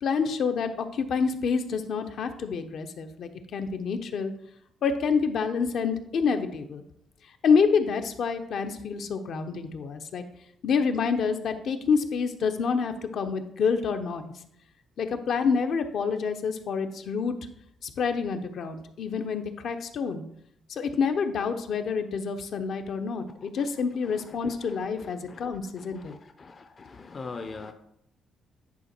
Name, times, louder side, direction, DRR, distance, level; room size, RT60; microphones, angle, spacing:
voice 1, 0.0-4.3 4.8-6.8 7.4-10.2 10.6-14.3 15.0-17.4 17.8-20.2 20.7-26.1, left 5 dB, 65° left, 7 dB, 0.9 m, -27 dB
voice 2, 26.1-27.7, left 4 dB, 40° left, 7 dB, 0.6 m, -40 dB
9.9 x 3.9 x 4.5 m, 0.73 s
cardioid pair, 90°, 0 cm